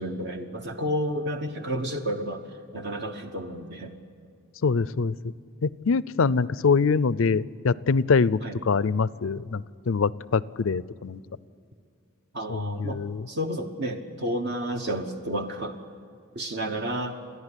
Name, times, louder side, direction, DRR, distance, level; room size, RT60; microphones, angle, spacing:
voice 1, 0.0-2.4 2.7-3.9 8.4-8.6 12.3-15.8 16.3-17.2, equal, 50° right, 4 dB, 1.2 m, -31 dB
voice 2, 4.6-5.2 5.6-11.2 12.5-13.3, left 4 dB, 65° left, 19 dB, 0.5 m, -24 dB
30.0 x 11.0 x 9.9 m, 2.4 s
head